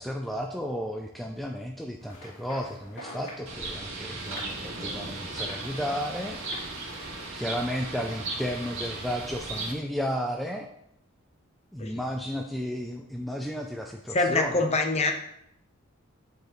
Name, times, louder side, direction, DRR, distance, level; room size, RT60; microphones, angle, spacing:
voice 1, 0.0-6.4 7.3-10.7 11.7-14.7, equal, ahead, 2 dB, 0.3 m, -33 dB
sound 1, 2.0-8.3, equal, 85° left, 2.6 m, -47 dB
Bird, 3.5-9.7, right 2 dB, 65° right, 2.2 m, -36 dB
voice 2, 14.1-15.1, left 3 dB, 30° left, 5 dB, 0.7 m, -24 dB
9.1 x 4.8 x 3.0 m, 0.77 s
head